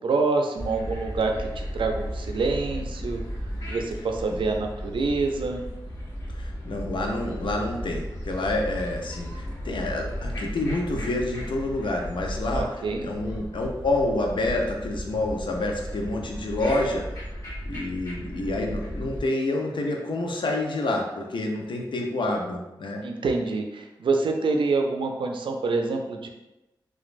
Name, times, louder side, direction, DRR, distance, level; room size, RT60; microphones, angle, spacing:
voice 1, 0.0-3.2 3.7-5.6 12.5-13.1 23.0-26.3, right 3 dB, 75° right, 3 dB, 0.4 m, -26 dB
sound 1, 0.6-19.2, equal, 40° left, 1.4 m, -35 dB
voice 2, 6.3-12.7 13.0-17.1 17.6-23.0, left 2 dB, 70° left, 1 dB, 0.5 m, -28 dB
3.0 x 2.3 x 2.5 m, 1.0 s
cardioid pair, 50°, 9 cm